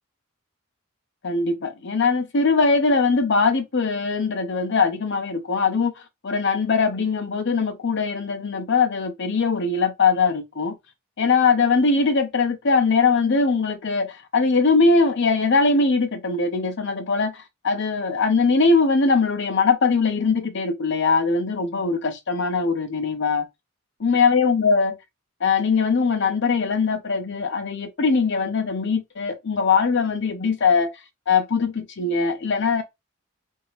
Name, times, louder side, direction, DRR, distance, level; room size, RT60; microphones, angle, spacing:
voice 1, 1.2-10.7 11.2-23.5 24.0-25.0 25.4-30.9 31.3-32.8, left 4 dB, 60° left, 0.7 m, -21 dB
2.8 x 2.7 x 3.1 m
head